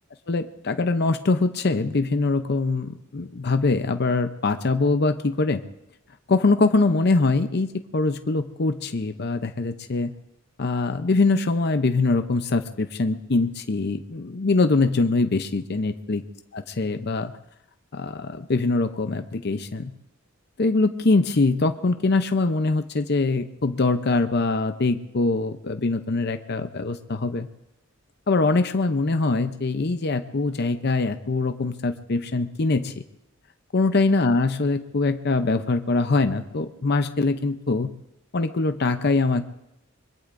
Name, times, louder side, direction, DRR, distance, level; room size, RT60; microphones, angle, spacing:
voice 1, 0.3-5.6 6.3-10.1 10.6-16.2 16.5-17.3 17.9-19.9 20.6-27.5 28.3-32.9 33.7-37.9 38.3-39.4, left 3 dB, 50° left, 8 dB, 0.6 m, -23 dB
23.5 x 22.0 x 2.6 m, 0.87 s
head